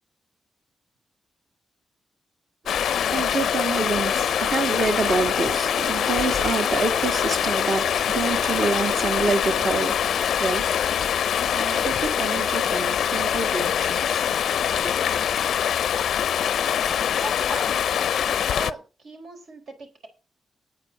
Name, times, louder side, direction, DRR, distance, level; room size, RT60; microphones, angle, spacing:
Stream, 2.7-18.7, left 9 dB, 90° left, 0.5 m, -24 dB
voice 1, 2.7-14.6 14.8-14.9, right 4 dB, 50° right, 2.4 m, -28 dB
voice 2, 17.2-17.7 18.3-20.1, right 2 dB, 70° right, 4.3 m, -38 dB
9.6 x 9.0 x 6.2 m
wide cardioid pair, 160°, 0 cm